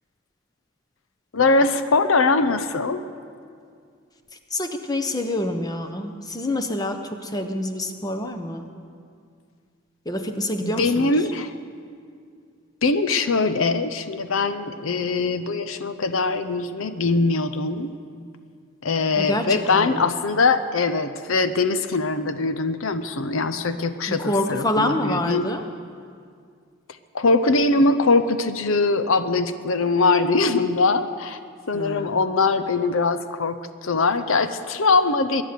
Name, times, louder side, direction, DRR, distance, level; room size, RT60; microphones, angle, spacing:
voice 1, 1.3-3.1 10.6-11.5 12.8-17.9 18.8-25.5 27.1-31.4 31.7-35.4, left 3 dB, 70° left, 11 dB, 0.7 m, -22 dB
voice 2, 4.5-8.7 10.0-11.2 19.2-20.1 24.1-25.6 31.7-32.2, left 1 dB, 15° left, 6 dB, 0.9 m, -27 dB
22.5 x 9.6 x 6.8 m, 2.2 s
head